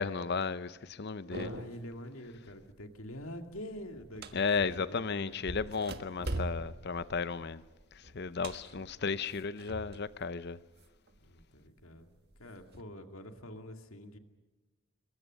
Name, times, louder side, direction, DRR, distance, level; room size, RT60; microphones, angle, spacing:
voice 1, 0.0-1.5 4.3-7.6 7.9-10.6, left 5 dB, 50° left, 0.7 m, -34 dB
voice 2, 1.3-5.4 11.2-12.1 12.4-14.2, left 1 dB, 80° left, 2.2 m, -46 dB
sound 1, 1.3-1.9 2.3-2.7 3.1-4.9 5.4-10.1 10.4-11.4 12.0-12.8, right 2 dB, 50° right, 1.5 m, -42 dB
27.0 x 22.5 x 6.4 m
head